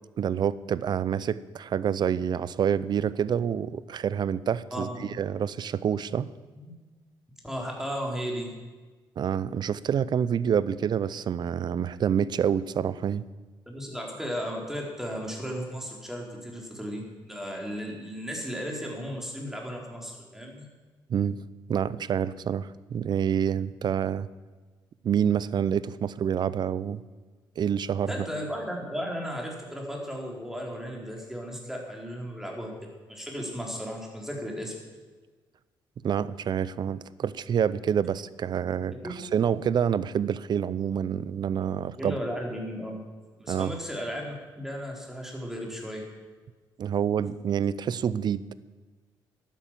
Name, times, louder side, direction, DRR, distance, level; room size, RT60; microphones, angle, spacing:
voice 1, 0.2-4.9 5.2-6.3 9.2-13.2 21.1-21.4 21.7-24.3 25.0-27.0 27.6-28.1 36.0-42.2 43.5-43.7 46.8-48.4, right 8 dB, 55° right, 18 dB, 0.5 m, -27 dB
voice 2, 7.4-8.5 13.7-20.7 28.1-32.7 33.1-34.7 39.0-39.2 42.0-43.0 43.4-46.1, equal, 5° right, -1 dB, 4.0 m, -35 dB
12.0 x 10.5 x 7.5 m, 1.3 s
cardioid pair, 85°, 9 cm